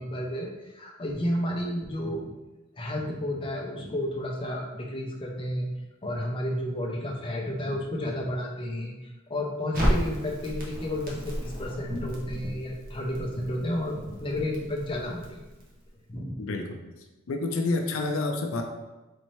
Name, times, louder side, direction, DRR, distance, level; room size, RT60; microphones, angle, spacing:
voice 1, 0.0-2.3 2.8-5.7 6.0-15.4 16.1-16.4, left 1 dB, 25° left, -1 dB, 0.5 m, -31 dB
Crackle, 9.7-15.9, equal, 45° right, 0.8 m, -33 dB
voice 2, 16.4-18.6, left 3 dB, 85° left, 3 dB, 0.5 m, -29 dB
4.2 x 2.6 x 3.1 m, 1.1 s
head